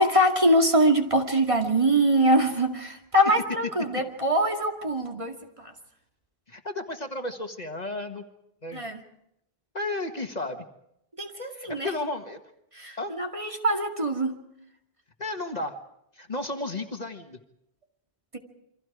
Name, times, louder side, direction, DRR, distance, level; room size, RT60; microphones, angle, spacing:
voice 1, 0.0-5.7 8.7-9.0 11.2-11.9 12.7-14.4, right 1 dB, 30° right, 2 dB, 2.3 m, -23 dB
voice 2, 6.5-8.2 8.6-8.8 9.7-10.6 11.5-12.4 13.0-13.1 15.2-15.8 16.2-17.4, left 2 dB, 40° left, 5 dB, 1.7 m, -33 dB
28.5 x 24.5 x 4.9 m, 0.79 s
omnidirectional pair, 1.0 m